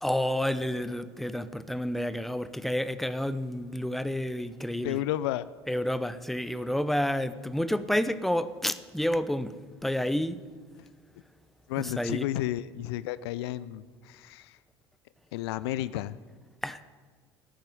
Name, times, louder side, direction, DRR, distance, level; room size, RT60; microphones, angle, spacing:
voice 1, 0.0-5.0 5.7-9.5 9.8-10.4 11.8-12.3 16.6-16.8, left 1 dB, ahead, 13 dB, 0.9 m, -29 dB
voice 2, 4.8-5.5 10.8-10.9 11.7-14.6 15.3-16.2, left 14 dB, 70° left, 17 dB, 0.5 m, -32 dB
15.5 x 8.9 x 9.8 m, 1.5 s
figure-of-eight pair, 65°, 14 cm